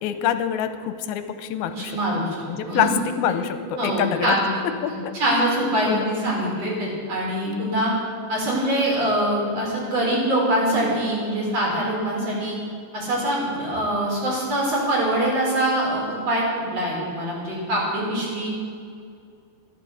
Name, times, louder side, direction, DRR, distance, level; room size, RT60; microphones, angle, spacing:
voice 1, 0.0-4.4 4.6-5.4 5.9-6.1 7.5-7.6, left 9 dB, 85° left, 10 dB, 2.6 m, -26 dB
voice 2, 1.8-2.4 2.6-2.9 3.8-4.5 5.1-7.9 8.3-12.6 12.9-18.5, right 1 dB, 40° right, -4 dB, 5.3 m, -24 dB
13.5 x 12.0 x 8.0 m, 2.4 s
omnidirectional pair, 4.4 m